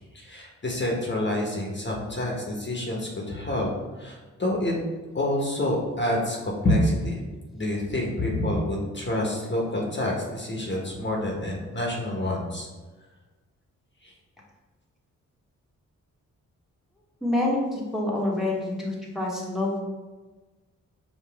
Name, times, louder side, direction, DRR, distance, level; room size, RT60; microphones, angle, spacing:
voice 1, 0.1-3.7 3.9-4.7 5.1-7.2 7.5-12.7 14.0-14.1, left 1 dB, 30° left, -2 dB, 1.1 m, -27 dB
voice 2, 17.2-19.8, left 1 dB, ahead, -3 dB, 1.2 m, -27 dB
5.0 x 2.5 x 3.4 m, 1.2 s
supercardioid pair, 50°, 34 cm